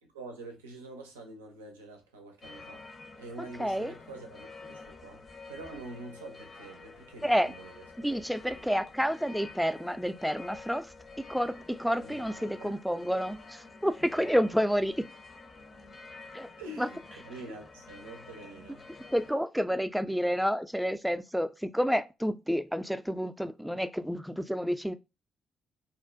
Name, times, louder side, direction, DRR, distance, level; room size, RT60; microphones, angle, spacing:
voice 1, 0.0-2.8 3.2-8.1 12.0-12.8 14.2-14.4 16.6-18.9, right 2 dB, 90° right, 0.4 m, -46 dB
sound 1, 2.4-19.3, left 3 dB, 50° left, 0.6 m, -49 dB
voice 2, 3.6-3.9 7.2-7.5 8.0-10.9 11.3-15.1 16.3-16.5 16.8-16.9 19.1-24.9, equal, ahead, 0.3 m, -29 dB
2.4 x 2.1 x 2.5 m
hypercardioid pair, 45°, 0 cm